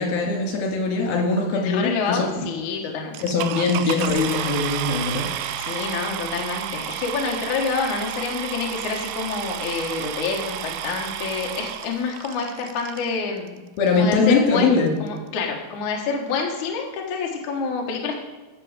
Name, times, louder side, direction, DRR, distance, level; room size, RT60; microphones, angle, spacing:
voice 1, 0.0-2.5 3.2-5.9 13.8-14.9, left 4 dB, 80° left, 0 dB, 4.0 m, -22 dB
voice 2, 1.7-3.2 5.6-13.6 13.9-14.7 15.0-18.1, left 5 dB, 60° left, 0 dB, 2.4 m, -27 dB
sound 1, 3.1-13.1 13.9-14.0 14.5-14.6 14.8-15.1, right 11 dB, 85° right, 2.4 m, -31 dB
15.0 x 6.2 x 4.9 m, 1.2 s
omnidirectional pair, 4.3 m